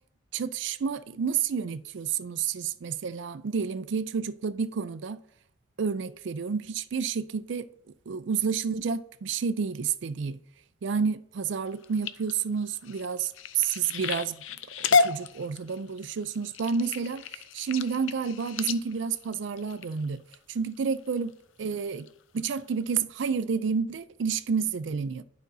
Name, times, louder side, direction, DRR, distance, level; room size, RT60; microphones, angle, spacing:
voice 1, 0.3-5.2 5.8-7.7 8.1-10.4 10.8-14.4 14.8-21.3 21.6-22.1 22.3-25.2, right 6 dB, 75° right, 0.4 m, -30 dB
sound 1, 11.7-20.4 20.9-21.3 21.7-22.1 22.5-22.6 22.9-23.0, left 5 dB, 85° left, 0.4 m, -31 dB
11.5 x 5.1 x 2.7 m
head